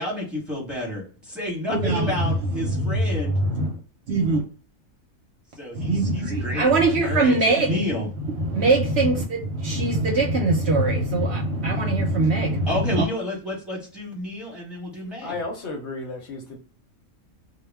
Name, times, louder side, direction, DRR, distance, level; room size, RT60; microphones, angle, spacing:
voice 1, 0.0-3.4 5.6-6.7 7.0-8.1 12.7-15.4, left 1 dB, ahead, 0.9 m, -30 dB
voice 2, 1.7-2.3 2.6-3.1 3.3-3.7 4.1-4.4 5.7-7.8 8.4-13.1, right 2 dB, 60° right, 0.8 m, -22 dB
voice 3, 15.2-16.6, left 3 dB, 60° left, 0.9 m, -33 dB
2.3 x 2.2 x 3.3 m
omnidirectional pair, 1.4 m